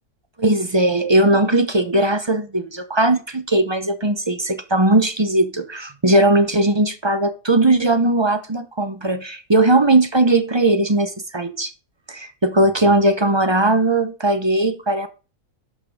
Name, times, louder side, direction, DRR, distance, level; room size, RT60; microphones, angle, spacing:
voice 1, 0.4-11.7 12.1-15.1, right 2 dB, 25° right, 0.7 m, -18 dB
11.5 x 6.0 x 3.6 m
omnidirectional pair, 1.6 m